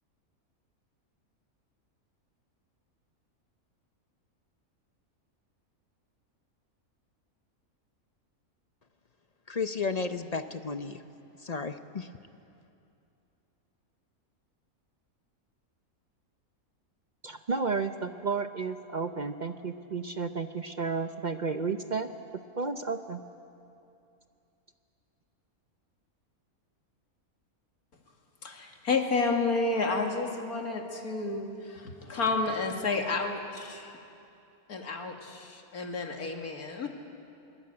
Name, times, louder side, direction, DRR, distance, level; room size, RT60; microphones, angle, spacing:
voice 1, 9.5-11.0 11.4-12.1, left 4 dB, 40° left, 9 dB, 0.6 m, -33 dB
voice 2, 17.2-22.1 22.6-23.2, right 4 dB, 40° right, 8 dB, 0.7 m, -32 dB
voice 3, 28.4-34.0 34.7-36.9, left 3 dB, 85° left, 3 dB, 2.6 m, -31 dB
23.0 x 21.5 x 8.8 m, 2.6 s
omnidirectional pair, 1.5 m